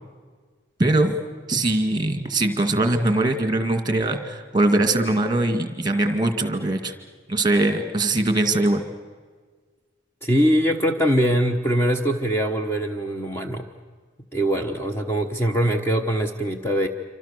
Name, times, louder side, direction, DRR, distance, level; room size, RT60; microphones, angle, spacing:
voice 1, 0.8-1.1 1.5-6.9 7.3-8.8, right 2 dB, 20° right, 7 dB, 2.1 m, -21 dB
voice 2, 10.2-13.7 14.3-16.9, equal, 15° left, 4 dB, 1.1 m, -22 dB
27.5 x 25.5 x 6.8 m, 1.5 s
head